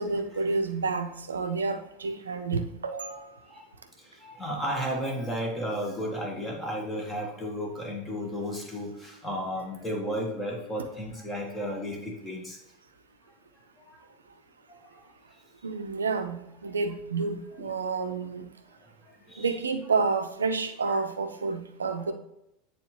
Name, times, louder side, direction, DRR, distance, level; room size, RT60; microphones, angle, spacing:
voice 1, 0.0-3.4 15.6-18.5 19.4-22.1, right 4 dB, 75° right, 8 dB, 0.5 m, -29 dB
voice 2, 4.2-12.6 14.7-14.8 17.6-17.8 19.3-19.5 20.8-21.0, equal, 10° left, 0 dB, 1.5 m, -33 dB
8.9 x 3.9 x 3.1 m, 0.84 s
figure-of-eight pair, 80°, 0 cm